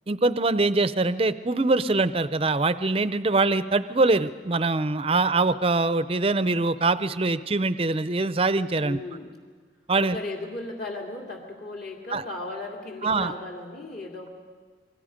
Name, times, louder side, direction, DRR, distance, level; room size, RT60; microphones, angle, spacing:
voice 1, 0.1-9.0 9.9-10.2 12.1-12.2 13.0-13.3, right 3 dB, 30° right, 13 dB, 0.6 m, -23 dB
voice 2, 8.8-9.3 10.0-14.3, left 2 dB, 55° left, -1 dB, 2.6 m, -36 dB
28.5 x 22.5 x 5.2 m, 1.5 s
head